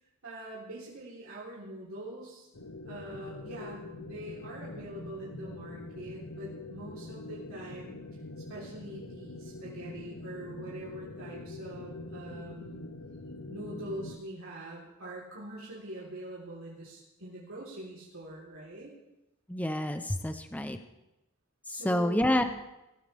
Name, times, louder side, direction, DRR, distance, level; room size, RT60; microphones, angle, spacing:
voice 1, 0.2-2.5 2.8-8.0 8.5-12.8 13.5-18.9 21.7-22.5, right 1 dB, 70° right, -6 dB, 3.8 m, -44 dB
sound 1, 2.5-14.2, left 2 dB, 80° left, 1.1 m, -44 dB
voice 2, 19.5-20.8 21.7-22.4, left 1 dB, 5° left, 8 dB, 0.7 m, -28 dB
22.5 x 15.0 x 3.5 m, 0.94 s
head